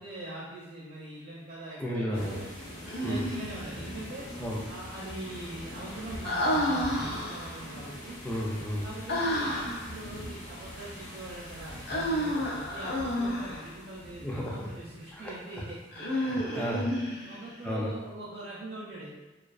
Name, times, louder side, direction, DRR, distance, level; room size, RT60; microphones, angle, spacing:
voice 1, 0.0-2.4 2.9-4.3 4.7-8.2 8.8-16.1 16.5-16.8 17.3-19.1, right 1 dB, 50° right, -7 dB, 0.5 m, -42 dB
voice 2, 1.8-2.4 3.0-3.3 4.4-4.6 8.2-8.9 14.2-14.7 15.1-15.3 16.0-16.9 17.6-17.9, equal, 10° left, -3 dB, 0.3 m, -33 dB
sound 1, 2.1-16.7, equal, 75° left, 0.8 m, -43 dB
Human voice, 2.9-3.8 6.2-7.6 9.1-9.9 11.9-13.7 15.9-17.5, equal, 55° left, 0.5 m, -30 dB
2.3 x 2.3 x 2.3 m, 1.1 s
head